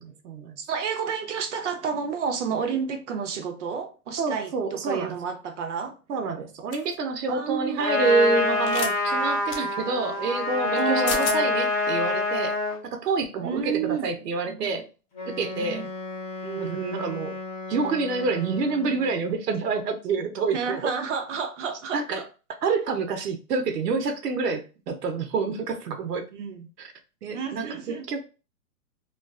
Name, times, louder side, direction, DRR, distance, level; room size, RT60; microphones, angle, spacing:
voice 1, 0.0-0.6 4.2-5.1 6.1-12.6 12.8-14.9 15.4-15.9 16.6-17.3 17.7-20.9 21.9-22.2 22.6-26.2 26.8-26.9 27.2-28.2, right 4 dB, 90° right, 0.8 m, -28 dB
voice 2, 0.6-5.9 7.3-7.9 10.7-11.5 13.4-14.2 15.5-15.9 16.4-16.8 20.5-22.3 26.3-26.7 27.3-28.0, right 6 dB, 50° right, 0.5 m, -30 dB
sound 1, 6.7-6.9 8.6-8.9 9.5-9.6 10.8-10.9 11.1-11.4, left 5 dB, 65° left, 0.8 m, -31 dB
Trumpet, 7.8-12.8, left 2 dB, ahead, 0.5 m, -25 dB
Wind instrument woodwind instrument, 15.1-19.3, left 3 dB, 25° left, 0.8 m, -37 dB
2.4 x 2.3 x 2.3 m
hypercardioid pair, 150°, 46 cm